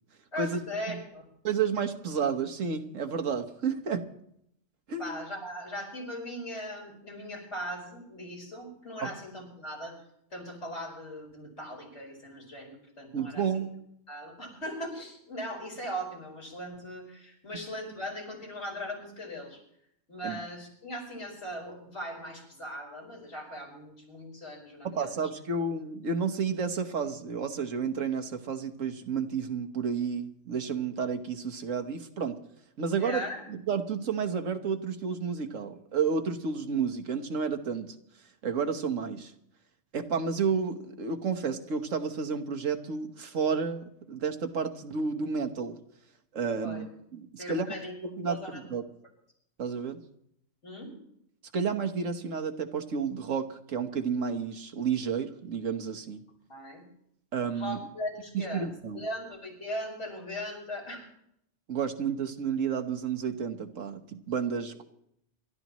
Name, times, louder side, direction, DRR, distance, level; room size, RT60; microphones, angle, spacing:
voice 1, 0.3-1.2 5.0-9.9 10.3-13.5 14.1-19.6 20.1-25.2 33.0-33.4 46.6-46.8 47.4-47.9 48.2-48.6 50.6-50.9 56.5-56.8 57.5-58.7 58.9-61.1, equal, 65° left, -1 dB, 5.1 m, -39 dB
voice 2, 1.4-4.1 4.9-5.2 9.0-9.1 13.1-13.7 20.2-20.4 24.8-32.4 32.8-37.9 38.4-39.3 39.9-45.8 46.3-46.9 47.1-47.7 48.0-48.8 49.6-50.0 51.5-56.2 57.3-57.8 58.3-59.0 61.7-64.8, right 6 dB, 85° right, 6 dB, 1.6 m, -31 dB
27.5 x 13.0 x 3.1 m, 0.73 s
omnidirectional pair, 1.3 m